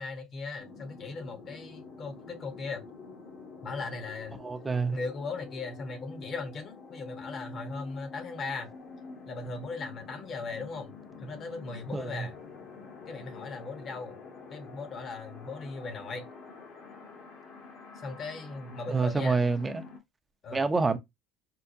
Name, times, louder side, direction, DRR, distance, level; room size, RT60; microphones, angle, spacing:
voice 1, 0.0-2.8 3.6-4.4 4.9-8.7 9.3-10.9 11.2-12.3 13.1-14.2 14.5-16.3 18.0-19.4 20.4-20.6, left 3 dB, 45° left, 1.0 m, -38 dB
sound 1, 0.6-20.0, left 4 dB, 65° left, 1.4 m, -47 dB
voice 2, 4.4-5.0 11.9-12.1 18.9-19.8 20.5-21.0, right 4 dB, 20° right, 0.6 m, -27 dB
4.6 x 2.2 x 2.7 m
supercardioid pair, 105°, 0 cm